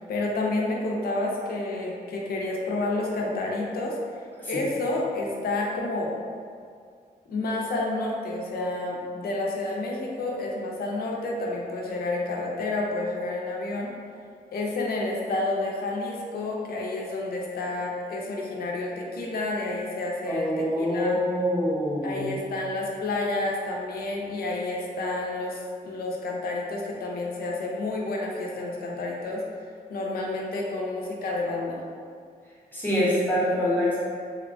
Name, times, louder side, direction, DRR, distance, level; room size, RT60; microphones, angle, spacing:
voice 1, 0.1-6.2 7.3-13.9 14.5-21.2 22.0-29.4 29.9-31.8, left 2 dB, 75° left, -2 dB, 0.4 m, -30 dB
voice 2, 20.3-22.3 32.7-34.1, equal, 10° left, -9 dB, 0.6 m, -25 dB
2.7 x 2.1 x 2.5 m, 2.2 s
wide cardioid pair, 180°, 16 cm